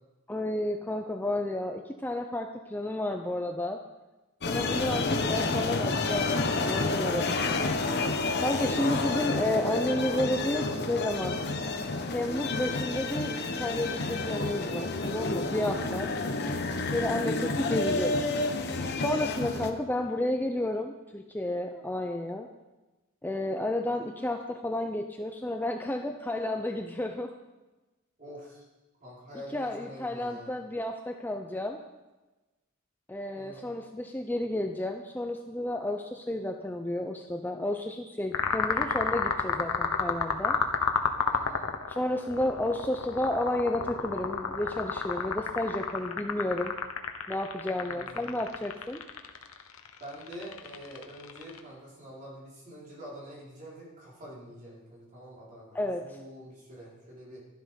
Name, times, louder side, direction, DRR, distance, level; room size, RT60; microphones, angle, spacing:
voice 1, 0.3-3.8 4.5-7.7 8.4-11.4 12.1-16.1 16.9-18.2 18.9-22.5 23.2-27.3 29.5-31.8 33.1-40.6 41.9-46.7 47.3-49.0 55.7-56.0, left 1 dB, 10° left, 4 dB, 0.6 m, -31 dB
sound 1, 4.4-19.7, left 3 dB, 50° left, 1.0 m, -30 dB
voice 2, 4.7-5.0 8.5-9.0 15.7-16.5 19.4-19.7 23.5-23.8 28.2-28.6 29.0-30.5 33.3-33.7 41.3-41.7 47.8-48.4 50.0-57.5, equal, 40° right, -5 dB, 4.8 m, -46 dB
sound 2, 38.3-51.6, left 5 dB, 80° left, 1.0 m, -31 dB
12.5 x 11.5 x 5.3 m, 1.1 s
head